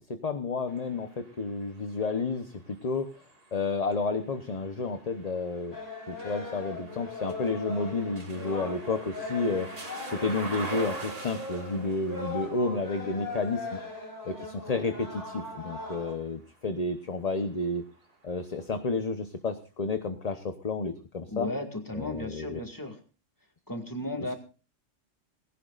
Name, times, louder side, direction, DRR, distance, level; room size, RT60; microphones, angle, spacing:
voice 1, 0.1-3.1 3.5-5.7 6.1-9.7 10.0-13.8 14.2-17.8 18.2-21.5 21.9-22.6, left 3 dB, 35° left, 8 dB, 0.9 m, -31 dB
sound 1, 0.7-16.6 17.2-18.4, right 2 dB, 50° right, 2.4 m, -46 dB
sound 2, 5.7-16.1, left 2 dB, 65° left, 5.3 m, -39 dB
voice 2, 21.3-23.0 23.7-24.3, left 1 dB, 15° left, 4 dB, 2.2 m, -34 dB
19.5 x 16.5 x 2.5 m, 0.34 s
omnidirectional pair, 1.3 m